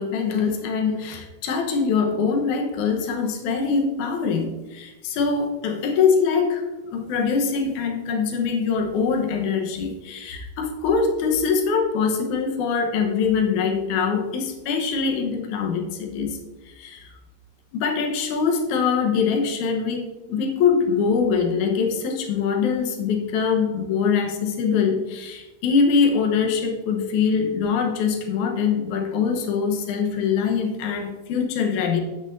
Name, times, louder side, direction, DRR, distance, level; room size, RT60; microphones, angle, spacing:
voice 1, 0.0-16.4 16.7-17.1 17.7-20.0 20.3-32.0, left 5 dB, 70° left, 3 dB, 2.1 m, -23 dB
14.5 x 6.2 x 2.6 m, 1.1 s
omnidirectional pair, 4.4 m